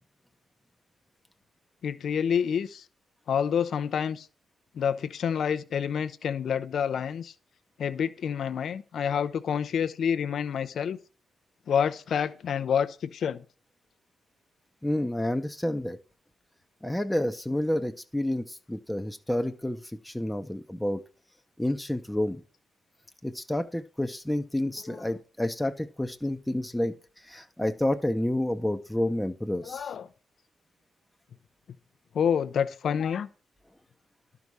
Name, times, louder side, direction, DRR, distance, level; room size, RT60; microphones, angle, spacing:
voice 1, 1.8-2.8 3.3-4.3 4.7-7.3 7.8-11.0 11.7-13.4 24.8-25.0 29.6-30.1 32.1-33.3, left 7 dB, 65° left, 0.6 m, -28 dB
voice 2, 14.8-16.0 16.8-21.0 21.6-22.4 23.2-26.9 27.2-29.9, left 1 dB, 5° left, 0.7 m, -29 dB
11.5 x 4.7 x 5.4 m
cardioid pair, 90°, 0 cm